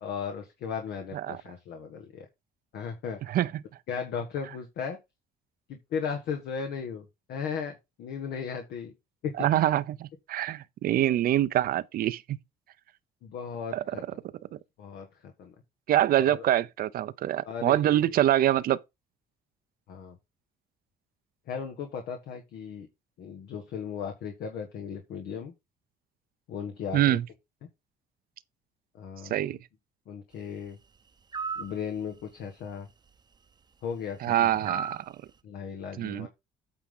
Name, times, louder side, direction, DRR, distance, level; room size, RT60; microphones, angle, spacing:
voice 1, 0.0-2.3 2.7-3.4 3.9-5.0 5.7-8.9 9.2-9.3 13.2-14.0 14.8-15.1 15.4-15.5 16.2-16.4 17.4-18.2 19.9-20.2 21.5-22.9 23.2-25.5 26.5-27.2 28.9-29.3 30.1-30.8 31.6-32.9 33.8-34.7 35.4-36.3, left 6 dB, 75° left, 1.6 m, -36 dB
voice 2, 3.3-3.6 9.4-12.2 13.7-13.8 14.5-14.6 15.9-18.8 26.9-27.2 29.3-29.6 34.2-35.0 36.0-36.3, right 12 dB, 60° right, 0.7 m, -25 dB
sound 1, 31.3-31.7 34.7-35.1, right 5 dB, 25° right, 0.9 m, -33 dB
8.8 x 3.8 x 5.6 m
cardioid pair, 110°, 17 cm